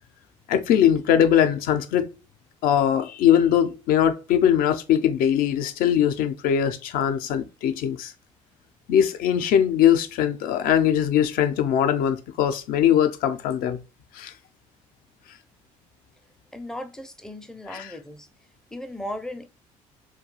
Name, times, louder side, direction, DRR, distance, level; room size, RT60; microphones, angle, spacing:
voice 1, 0.5-2.1 2.6-8.1 8.9-13.8 14.1-14.3 17.7-18.0, left 9 dB, 65° left, 0.4 m, -21 dB
voice 2, 16.5-18.3 18.7-19.5, left 1 dB, 5° left, 0.4 m, -36 dB
2.3 x 2.2 x 2.8 m
hypercardioid pair, 60°, 17 cm